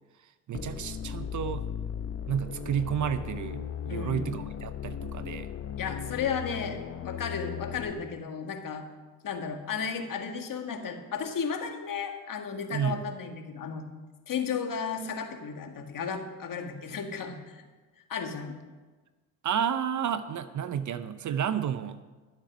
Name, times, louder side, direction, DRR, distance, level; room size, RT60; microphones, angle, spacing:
sound 1, 0.5-7.9, left 8 dB, 35° left, 0.8 m, -37 dB
voice 1, 0.5-1.6 2.3-5.5 12.7-13.0 19.4-22.0, right 8 dB, 45° right, 12 dB, 0.7 m, -31 dB
voice 2, 3.9-4.3 5.8-8.9 9.2-13.8 14.3-17.6 18.1-18.5, left 6 dB, 50° left, 5 dB, 1.8 m, -34 dB
12.0 x 7.5 x 6.0 m, 1.3 s
supercardioid pair, 70°, 43 cm